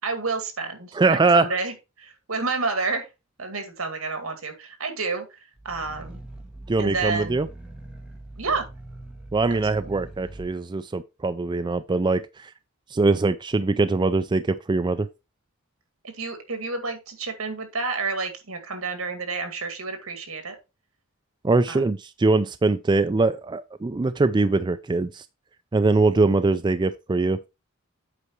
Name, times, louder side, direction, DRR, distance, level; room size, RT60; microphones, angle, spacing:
voice 1, 0.0-3.1 3.4-5.4 5.6-6.2 6.8-7.4 8.4-8.7 9.7-9.9 16.0-20.6 21.7-21.8, right 4 dB, 75° right, 2.2 m, -30 dB
voice 2, 0.9-1.5 6.7-7.5 9.3-12.5 12.9-15.1 21.4-25.2 25.7-27.4, right 3 dB, 20° right, 0.4 m, -22 dB
Growling, 5.6-10.5, right 2 dB, 5° right, 1.6 m, -42 dB
8.3 x 4.8 x 4.6 m
head